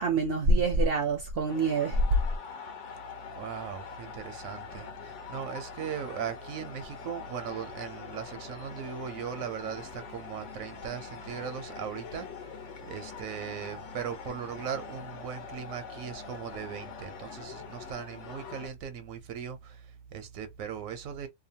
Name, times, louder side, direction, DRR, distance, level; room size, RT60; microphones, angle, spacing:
voice 1, 0.0-2.0, right 2 dB, 60° right, 0.6 m, -25 dB
sound 1, 1.5-18.7, left 6 dB, 70° left, 1.1 m, -44 dB
voice 2, 3.4-21.3, right 8 dB, 85° right, 1.1 m, -38 dB
2.9 x 2.1 x 2.7 m
omnidirectional pair, 1.4 m